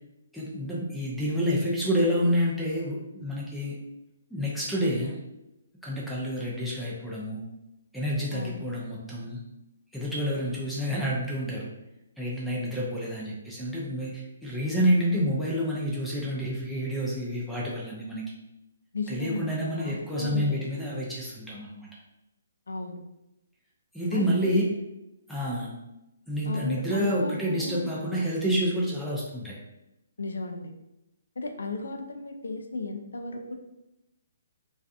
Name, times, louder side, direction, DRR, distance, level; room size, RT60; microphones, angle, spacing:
voice 1, 0.3-3.8 4.3-5.2 5.8-7.4 7.9-9.4 9.9-11.7 12.2-18.2 19.1-21.9 23.9-24.7 25.3-25.7 26.3-29.6, equal, ahead, -7 dB, 0.5 m, -28 dB
voice 2, 8.3-8.6 18.9-20.6 22.7-23.0 24.1-24.7 26.5-27.9 30.2-30.7 31.4-33.6, left 2 dB, 75° left, 4 dB, 0.4 m, -35 dB
2.5 x 2.3 x 2.3 m, 0.92 s
figure-of-eight pair, 140°, 0 cm